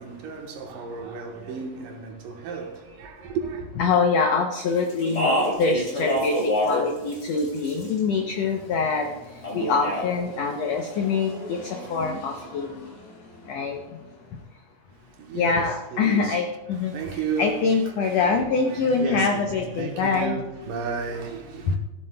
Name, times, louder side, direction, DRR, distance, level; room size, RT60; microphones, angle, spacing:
voice 1, 0.0-3.7 15.1-16.4 16.9-17.6 18.0-18.4 18.7-19.5 19.8-21.8, right 5 dB, 75° right, 2.6 m, -33 dB
voice 2, 3.8-6.4 6.7-9.1 9.5-11.6 11.9-12.8 13.5-13.8 15.3-20.4 21.6-21.8, left 4 dB, 85° left, 1.4 m, -24 dB
Speech, 4.9-6.8 7.1-8.0 9.4-10.1, left 1 dB, 25° left, 2.8 m, -26 dB
Engine, 7.0-14.4, left 1 dB, 70° left, 4.6 m, -45 dB
16.0 x 7.5 x 2.2 m
omnidirectional pair, 3.9 m